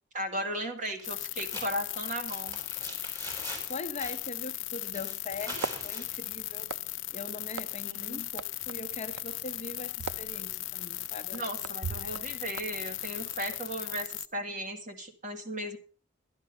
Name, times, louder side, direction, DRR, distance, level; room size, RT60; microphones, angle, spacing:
voice 1, 0.1-2.6 7.8-8.3 11.3-15.8, right 1 dB, 40° right, 2.2 m, -36 dB
sound 1, 0.9-1.1 1.4-3.7 4.0-4.3 4.9-6.1, equal, 20° right, 5.6 m, -42 dB
sound 2, 1.0-14.3, left 18 dB, 65° left, 0.6 m, -37 dB
voice 2, 3.7-6.7 7.1-11.7 12.0-12.2, left 3 dB, 35° left, 0.8 m, -41 dB
sound 3, 5.3-13.9, right 5 dB, 75° right, 0.6 m, -44 dB
11.5 x 11.5 x 5.4 m
head